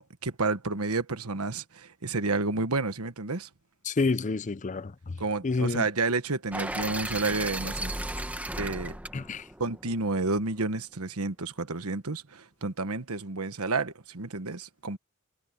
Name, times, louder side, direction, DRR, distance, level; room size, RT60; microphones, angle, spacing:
voice 1, 0.0-3.5 5.2-7.9 8.6-9.0 9.6-15.0, right 3 dB, 75° right, 1.3 m, -30 dB
voice 2, 3.9-4.9 5.4-5.8 9.1-9.4, left 3 dB, 35° left, 0.6 m, -28 dB
sound 1, 6.5-10.6, right 1 dB, 5° right, 1.0 m, -35 dB
head